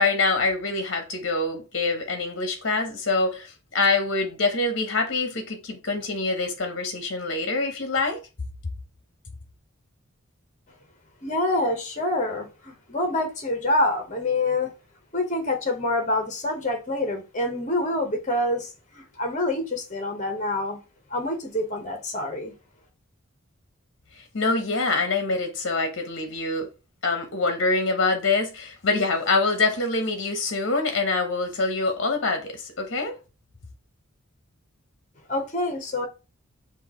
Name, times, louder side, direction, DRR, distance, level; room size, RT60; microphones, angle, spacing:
voice 1, 0.0-8.2 24.3-26.7 27.0-33.1, left 3 dB, 55° left, 0.9 m, -25 dB
voice 2, 11.2-14.7 15.1-20.8 21.1-22.5 35.3-36.1, left 2 dB, 35° left, 1.0 m, -26 dB
6.0 x 2.4 x 2.9 m
head